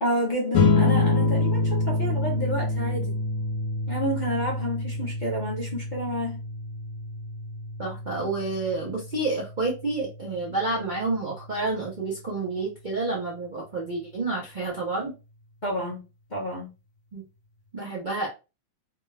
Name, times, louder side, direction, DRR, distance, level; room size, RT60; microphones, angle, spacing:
voice 1, 0.0-3.2 3.9-6.4 15.6-16.0 16.3-16.7, equal, 45° left, 0.6 m, -29 dB
sound 1, 0.5-11.3, left 3 dB, 70° left, 1.0 m, -27 dB
voice 2, 7.8-15.1 17.1-17.2 17.7-18.3, right 3 dB, 65° right, 0.4 m, -29 dB
3.5 x 2.3 x 3.2 m
omnidirectional pair, 2.2 m